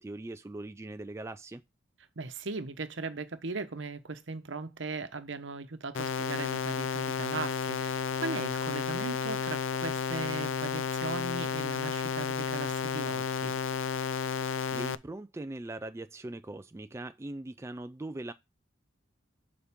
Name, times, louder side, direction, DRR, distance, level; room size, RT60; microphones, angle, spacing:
voice 1, 0.0-1.6 14.7-18.3, right 2 dB, 15° right, 0.3 m, -40 dB
voice 2, 2.2-13.6, right 3 dB, 70° right, 1.0 m, -38 dB
sound 1, 5.9-14.9, left 6 dB, 85° left, 0.5 m, -32 dB
7.1 x 5.1 x 3.6 m
head